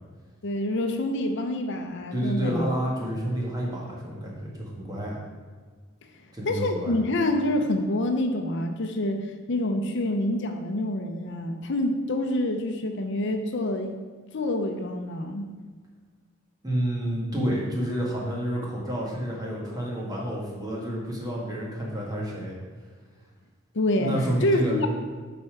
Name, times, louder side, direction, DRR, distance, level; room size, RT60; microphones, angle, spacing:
voice 1, 0.4-2.7 6.4-14.0 14.3-15.5 23.7-24.1 24.4-24.9, left 1 dB, 60° left, 5 dB, 0.7 m, -27 dB
voice 2, 2.1-5.2 6.3-6.9 16.6-22.6 24.0-24.9, right 1 dB, 20° right, -3 dB, 1.7 m, -29 dB
8.2 x 4.4 x 6.0 m, 1.4 s
head